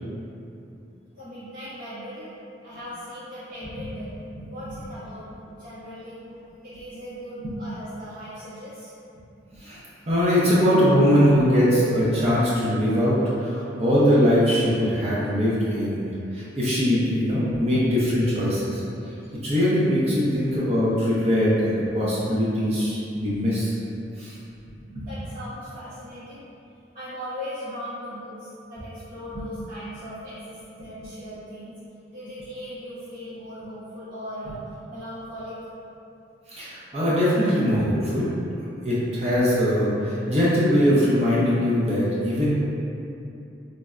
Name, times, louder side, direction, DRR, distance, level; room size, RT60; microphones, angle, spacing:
voice 1, 1.1-4.1 4.5-5.3 5.6-8.9 9.9-10.0 17.4-17.7 25.0-26.5 26.9-31.7 32.1-34.6 34.9-35.6, equal, 50° right, -18 dB, 1.5 m, -38 dB
voice 2, 10.1-19.1 19.4-23.7 24.2-24.3 24.7-25.1 36.5-38.3 38.8-42.5, equal, 35° right, -8 dB, 0.5 m, -21 dB
3.9 x 2.1 x 2.3 m, 2.7 s
head